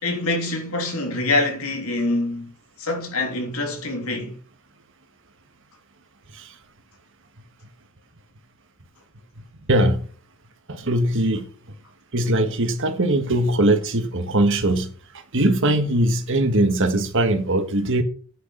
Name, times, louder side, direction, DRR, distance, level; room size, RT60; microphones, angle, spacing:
voice 1, 0.0-2.5 2.8-4.4, left 2 dB, 70° left, 3.1 m, -25 dB
voice 2, 9.7-10.1 10.7-11.4 12.1-14.9 15.3-18.0, right 1 dB, 60° right, 1.6 m, -20 dB
9.6 x 6.5 x 5.7 m
head